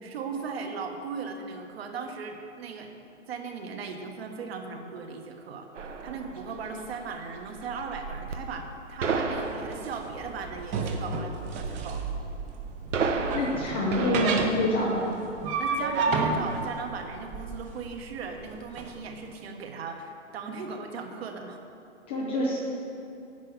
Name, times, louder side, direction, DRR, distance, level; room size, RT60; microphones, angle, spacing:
voice 1, 0.0-3.0 3.3-12.0 15.6-21.6, right 5 dB, 55° right, 4 dB, 1.4 m, -38 dB
sound 1, 5.7-14.4, right 4 dB, 75° right, 1.2 m, -34 dB
sound 2, 9.3-18.9, right 4 dB, 20° right, 0.8 m, -31 dB
voice 2, 13.3-15.2 22.1-22.6, left 1 dB, 10° left, -4 dB, 0.3 m, -26 dB
10.5 x 6.7 x 7.0 m, 2.6 s
figure-of-eight pair, 125°, 38 cm